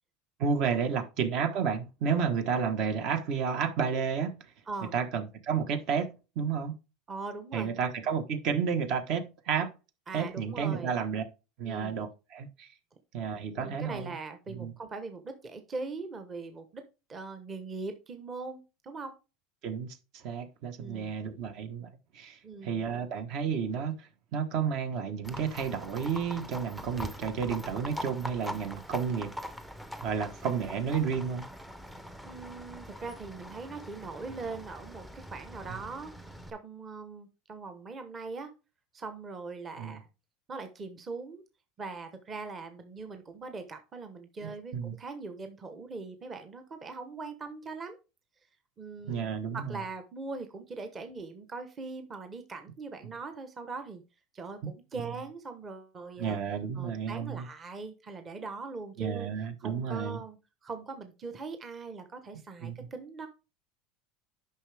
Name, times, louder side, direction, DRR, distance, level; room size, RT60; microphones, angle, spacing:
voice 1, 0.4-4.3 4.9-6.1 6.3-6.8 7.5-9.7 10.1-11.2 11.6-12.7 13.1-14.1 14.6-14.7 19.6-21.9 22.1-29.3 30.0-31.5 39.8-40.0 44.4-44.9 49.1-49.8 56.2-57.4 59.0-60.2 62.6-62.7, right 6 dB, 50° right, 1.3 m, -31 dB
voice 2, 7.1-7.8 10.1-10.9 11.6-12.0 13.5-19.2 20.8-21.1 22.4-22.8 32.2-36.1 36.5-38.5 38.9-40.1 40.5-41.4 41.8-48.0 48.8-49.3 49.5-54.0 54.3-56.4 56.7-59.3 59.6-63.3, right 4 dB, 20° right, 1.1 m, -41 dB
Livestock farm animals working animals, 25.2-36.5, equal, 5° right, 0.6 m, -43 dB
9.8 x 5.8 x 3.4 m
supercardioid pair, 155°, 0 cm